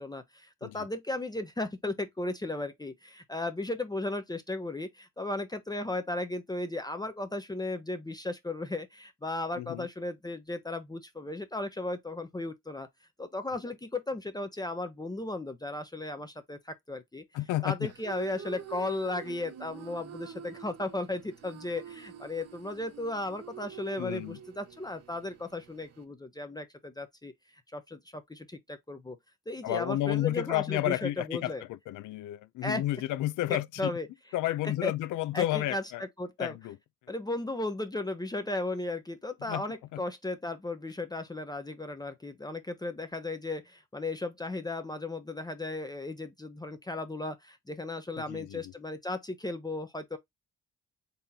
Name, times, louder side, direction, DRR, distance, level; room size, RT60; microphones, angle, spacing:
voice 1, 0.0-12.9 13.2-17.2 17.6-27.3 27.7-29.2 29.5-31.6 32.6-32.8 33.8-34.1 34.6-34.9 35.3-36.6 37.1-50.2, left 2 dB, 15° left, 0.7 m, -35 dB
voice 2, 9.6-9.9 17.3-17.9 24.0-24.4 29.6-33.9 34.3-36.0 36.4-36.8 39.5-39.6 39.9-40.0 48.2-48.7, left 15 dB, 80° left, 0.5 m, -31 dB
sound 1, 17.8-26.0, right 8 dB, 55° right, 0.9 m, -46 dB
4.1 x 3.4 x 2.7 m
cardioid pair, 90°, 30 cm